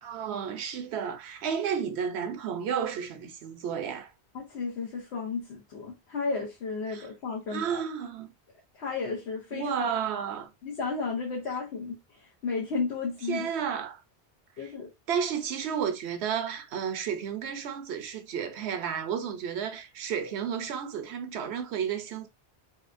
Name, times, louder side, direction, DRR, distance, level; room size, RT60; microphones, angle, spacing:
voice 1, 0.0-4.1 6.9-7.1 7.5-8.3 9.5-10.5 13.3-14.0 14.6-14.7 15.1-22.3, right 7 dB, 80° right, 0.9 m, -32 dB
voice 2, 4.3-7.8 8.7-9.9 10.6-13.5 14.6-14.9, left 4 dB, 80° left, 1.1 m, -33 dB
4.1 x 2.1 x 2.5 m
omnidirectional pair, 1.1 m